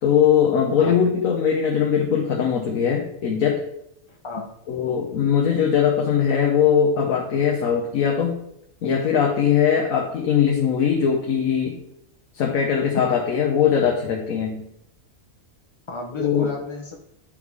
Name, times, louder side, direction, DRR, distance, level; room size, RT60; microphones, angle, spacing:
voice 1, 0.0-3.6 4.7-8.4 8.8-11.8 12.3-14.6 16.2-16.5, left 7 dB, 70° left, 1 dB, 1.2 m, -20 dB
voice 2, 4.1-4.5 15.9-16.9, left 3 dB, 45° left, 0 dB, 0.4 m, -32 dB
8.7 x 3.6 x 4.8 m, 0.77 s
omnidirectional pair, 1.5 m